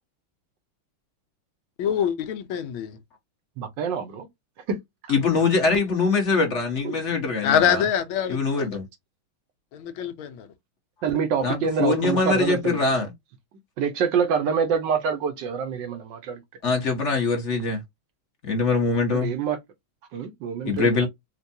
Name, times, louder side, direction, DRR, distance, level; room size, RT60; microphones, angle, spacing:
voice 1, 1.8-3.0 7.4-8.4 9.7-10.5, left 9 dB, 80° left, 1.5 m, -24 dB
voice 2, 3.6-4.3 4.7-4.8 11.0-12.8 13.8-16.4 19.1-19.6 20.1-21.1, right 6 dB, 70° right, 1.3 m, -26 dB
voice 3, 5.1-7.8 8.3-8.8 11.4-13.1 16.6-17.8 18.4-19.3 20.6-21.1, left 4 dB, 40° left, 1.3 m, -23 dB
4.4 x 2.3 x 2.6 m
omnidirectional pair, 2.3 m